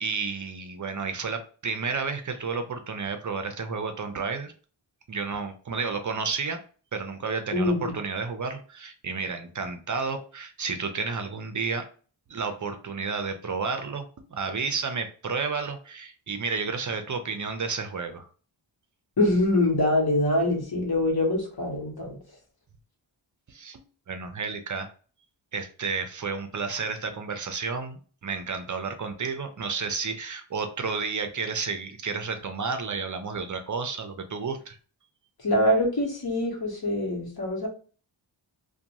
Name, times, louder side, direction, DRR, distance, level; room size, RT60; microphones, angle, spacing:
voice 1, 0.0-4.5 5.1-6.6 6.9-11.8 12.3-14.0 14.3-18.3 23.5-23.8 24.1-24.9 25.5-34.8, right 5 dB, 40° right, 7 dB, 0.5 m, -31 dB
voice 2, 7.5-7.9 19.2-22.2 35.4-37.7, left 1 dB, 50° left, 1 dB, 1.1 m, -24 dB
2.5 x 2.2 x 2.8 m, 0.40 s
wide cardioid pair, 65°, 48 cm